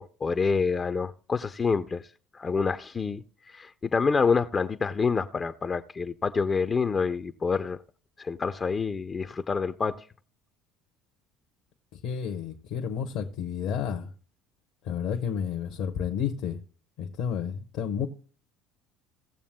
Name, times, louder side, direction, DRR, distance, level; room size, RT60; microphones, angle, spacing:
voice 1, 0.0-2.0 2.3-3.2 3.5-7.8 8.2-10.0, left 5 dB, 30° left, 0.5 m, -27 dB
voice 2, 11.9-14.1 14.8-16.6 17.0-18.1, left 7 dB, 65° left, 0.9 m, -31 dB
18.0 x 7.0 x 2.2 m
hypercardioid pair, 80°, 0 cm